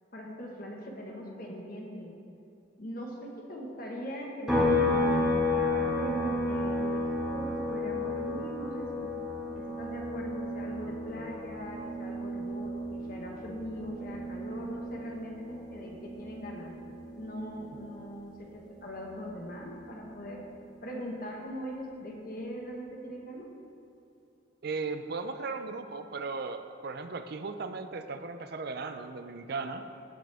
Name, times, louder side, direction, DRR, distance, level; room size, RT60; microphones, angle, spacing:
voice 1, 0.1-2.1 2.8-9.1 9.5-16.7 17.2-20.4 20.8-23.5, equal, 50° left, -1 dB, 1.5 m, -41 dB
sound 1, 4.5-18.0 18.4-20.6, left 2 dB, 5° right, 1.8 m, -32 dB
voice 2, 24.6-29.8, right 4 dB, 60° right, 9 dB, 0.5 m, -36 dB
16.5 x 6.1 x 3.5 m, 2.7 s
head